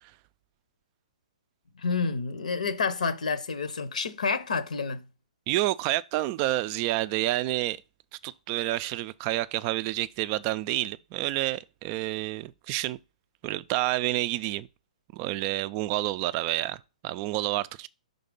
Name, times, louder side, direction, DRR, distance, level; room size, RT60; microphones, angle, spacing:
voice 1, 1.8-5.0, left 5 dB, 75° left, 0.9 m, -29 dB
voice 2, 5.5-7.8 8.2-13.0 13.4-14.7 15.1-17.9, right 16 dB, 35° right, 0.3 m, -29 dB
5.6 x 3.8 x 5.3 m
hypercardioid pair, 125°, 4 cm